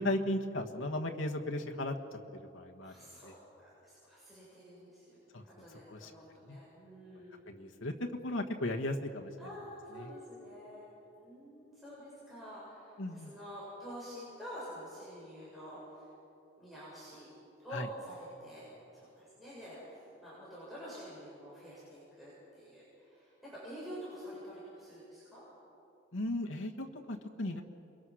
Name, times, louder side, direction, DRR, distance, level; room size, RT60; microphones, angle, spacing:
voice 1, 0.0-1.9 2.5-2.9 3.2-3.3 5.3-5.4 5.9-6.1 6.5-6.6 7.5-7.9 8.2-9.3 10.0-10.1 13.0-13.3 17.7-17.9 26.1-27.6, left 1 dB, 85° left, 2 dB, 1.5 m, -36 dB
voice 2, 2.8-3.4 3.6-7.5 9.4-10.8 11.2-16.1 16.6-17.3 17.6-18.6 18.9-25.4, equal, ahead, -10 dB, 7.1 m, -48 dB
29.0 x 22.5 x 6.3 m, 2.8 s
head